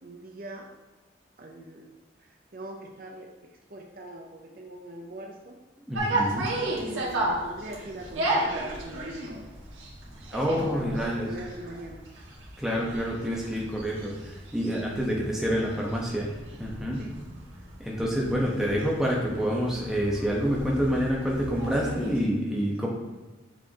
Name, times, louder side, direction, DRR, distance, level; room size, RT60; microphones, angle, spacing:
voice 1, 0.0-0.7 1.4-1.9 2.2-3.3 3.7-5.6 6.6-8.5 8.8-9.5 10.7-12.0 14.9-15.2 17.0-17.1 18.3-18.4 18.7-18.8 22.8-22.9, right 1 dB, 45° right, 1 dB, 0.6 m, -42 dB
voice 2, 5.9-6.5 10.3-11.3 12.6-17.1 17.8-22.9, equal, ahead, -3 dB, 1.0 m, -28 dB
sound 1, 5.9-22.2, right 1 dB, 90° right, 1.8 m, -34 dB
7.4 x 5.4 x 2.9 m, 1.2 s
head